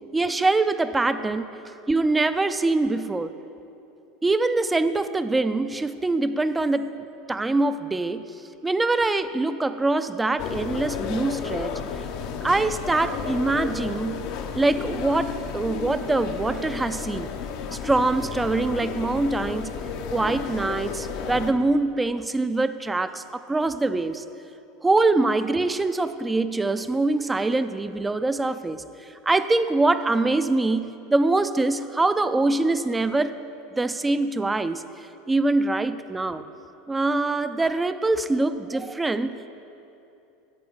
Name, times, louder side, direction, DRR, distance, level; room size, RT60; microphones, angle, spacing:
voice 1, 0.1-1.5 1.9-3.4 4.2-6.9 7.3-8.3 8.6-11.8 12.4-14.2 14.6-17.3 17.7-19.8 20.1-24.2 24.8-28.8 29.3-33.4 33.8-34.8 35.3-36.4 36.9-39.5, right 2 dB, 15° right, 12 dB, 0.4 m, -24 dB
sound 1, 10.4-21.5, left 6 dB, 60° left, 0.7 m, -32 dB
10.5 x 4.2 x 7.7 m, 2.8 s
hypercardioid pair, 100°, 0 cm